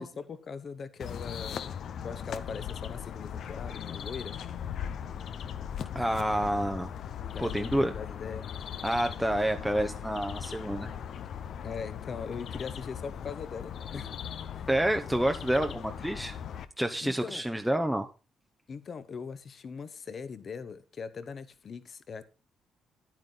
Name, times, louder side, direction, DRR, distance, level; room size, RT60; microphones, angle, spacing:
voice 1, 0.0-1.7 2.0-4.4 7.3-8.5 11.6-14.1 14.5-14.7 17.0-17.5 18.7-22.2, left 5 dB, 50° left, 1.0 m, -40 dB
sound 1, 1.0-16.7, left 8 dB, 65° left, 0.7 m, -39 dB
voice 2, 5.9-6.9 7.4-7.9 8.8-10.9 14.7-16.4 16.8-18.1, right 1 dB, 5° right, 0.7 m, -28 dB
9.6 x 9.0 x 3.9 m
cardioid pair, 90°, 0 cm